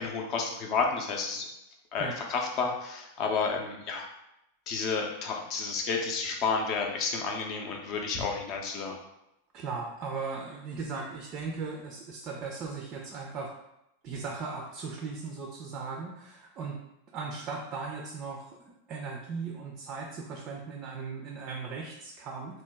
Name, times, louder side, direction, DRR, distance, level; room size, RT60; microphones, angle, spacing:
voice 1, 0.0-1.5 1.9-4.0 4.7-9.0, left 4 dB, 40° left, 1 dB, 0.6 m, -31 dB
voice 2, 9.5-13.5 14.0-16.8 17.1-22.6, right 4 dB, 35° right, 0 dB, 0.4 m, -38 dB
2.9 x 2.2 x 3.3 m, 0.85 s
figure-of-eight pair, 90°, 0 cm